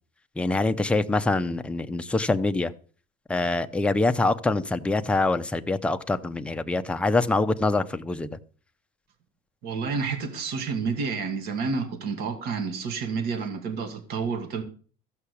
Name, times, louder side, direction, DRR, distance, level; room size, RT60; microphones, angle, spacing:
voice 1, 0.4-2.7 3.3-8.3, left 2 dB, 5° left, 0.5 m, -25 dB
voice 2, 9.6-14.6, right 5 dB, 50° right, 2.3 m, -29 dB
14.5 x 5.7 x 8.4 m
cardioid pair, 165°, 20 cm